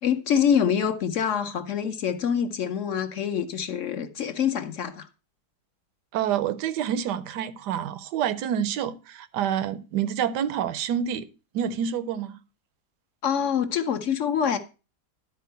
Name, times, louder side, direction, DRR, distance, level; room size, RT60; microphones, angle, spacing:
voice 1, 0.0-5.1 13.2-14.6, left 8 dB, 60° left, 0.9 m, -25 dB
voice 2, 6.1-11.3 11.5-12.4, right 9 dB, 85° right, 1.3 m, -28 dB
11.0 x 4.4 x 5.4 m
omnidirectional pair, 1.8 m